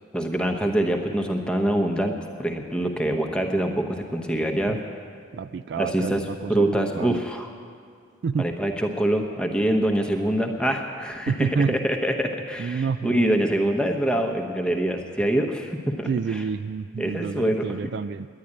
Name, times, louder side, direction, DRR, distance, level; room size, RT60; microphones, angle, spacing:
voice 1, 0.1-4.8 5.8-7.5 8.4-16.4 17.0-17.8, right 1 dB, 5° left, 3 dB, 0.9 m, -25 dB
voice 2, 5.3-7.2 8.2-8.5 11.3-11.9 12.6-13.4 16.1-18.3, right 5 dB, 60° right, 13 dB, 0.3 m, -28 dB
10.5 x 10.0 x 9.8 m, 2.2 s
head